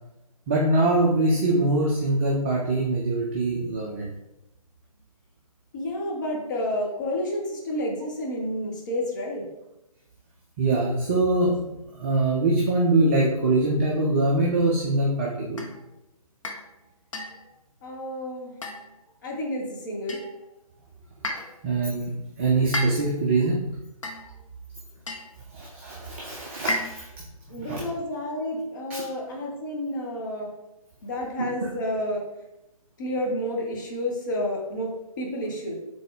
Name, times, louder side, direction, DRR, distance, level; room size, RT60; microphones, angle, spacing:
voice 1, 0.5-4.1 10.6-11.6 11.9-15.6 21.3-23.6 25.5-27.1 27.7-27.8 28.9-29.0 31.6-31.7, right 2 dB, 20° right, -3 dB, 0.5 m, -23 dB
voice 2, 5.7-9.4 17.8-18.6 19.2-20.2 27.5-30.5 31.0-32.2 33.0-35.8, left 1 dB, 30° left, -1 dB, 0.9 m, -30 dB
sound 1, 15.6-15.8 16.4-16.7 17.1-17.5 18.6-19.1 20.1-20.4 21.2-21.6 22.7-23.2 24.0-24.4 25.1-25.4 26.7-27.2, left 1 dB, 60° left, 0.8 m, -33 dB
3.7 x 3.7 x 3.7 m, 0.91 s
figure-of-eight pair, 140°, 19 cm